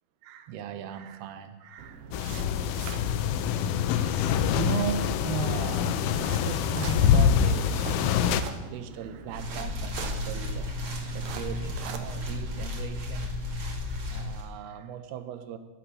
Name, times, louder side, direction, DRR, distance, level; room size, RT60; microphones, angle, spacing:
voice 1, 0.2-2.1 4.1-13.4 13.8-15.6, right 8 dB, 70° right, 9 dB, 2.6 m, -38 dB
sound 1, 1.8-12.6, right 6 dB, 90° right, 1.8 m, -43 dB
sound 2, 2.1-8.4, left 8 dB, 85° left, 3.2 m, -25 dB
sound 3, 9.3-14.5, left 2 dB, 40° right, 2.4 m, -33 dB
17.0 x 12.0 x 6.4 m, 1.2 s
omnidirectional pair, 5.5 m